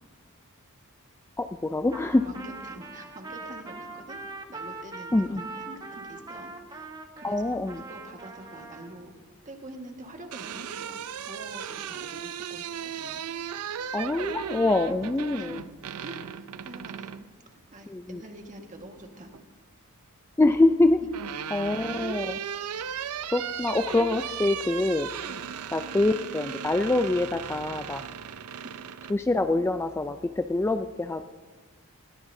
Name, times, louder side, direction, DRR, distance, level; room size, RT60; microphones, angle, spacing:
voice 1, 1.4-2.2 5.1-5.4 7.2-7.8 13.9-15.6 17.9-18.2 20.4-21.0 21.5-22.4 23.3-25.1 25.7-28.0 29.1-31.3, left 2 dB, 10° left, 8 dB, 0.3 m, -25 dB
Trumpet, 1.9-9.0, right 3 dB, 20° right, 1.0 m, -42 dB
voice 2, 2.2-4.2 4.5-6.9 7.2-7.4 7.7-9.1 9.4-13.2 15.4-15.7 16.0-17.1 17.5-19.3 21.0-21.1 25.3-25.5 28.6-28.7, right 1 dB, 35° right, 3 dB, 1.6 m, -46 dB
sound 1, 10.0-17.3 18.7-19.4 20.6-29.2, right 8 dB, 85° right, 0.5 m, -36 dB
20.0 x 17.5 x 2.7 m, 1.5 s
head